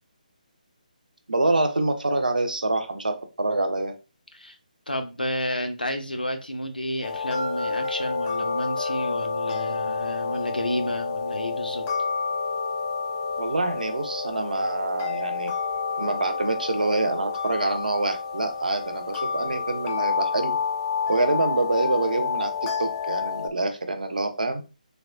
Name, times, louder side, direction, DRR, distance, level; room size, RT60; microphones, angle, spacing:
voice 1, 1.3-3.9 13.4-15.5 16.0-20.6 21.1-24.6, right 2 dB, 70° right, 0.6 m, -26 dB
voice 2, 4.9-11.9, left 1 dB, 85° left, 0.7 m, -31 dB
sound 1, 7.0-23.5, left 5 dB, 20° left, 0.3 m, -29 dB
3.4 x 2.2 x 2.5 m
figure-of-eight pair, 145°, 5 cm